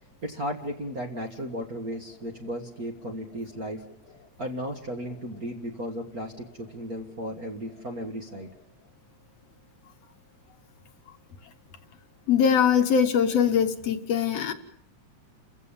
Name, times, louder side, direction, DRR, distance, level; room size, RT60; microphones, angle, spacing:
voice 1, 0.2-3.8 4.4-8.5, equal, 40° right, 3 dB, 1.5 m, -35 dB
voice 2, 12.3-14.5, left 7 dB, 65° left, 7 dB, 2.1 m, -22 dB
30.0 x 15.5 x 7.2 m, 0.73 s
omnidirectional pair, 3.4 m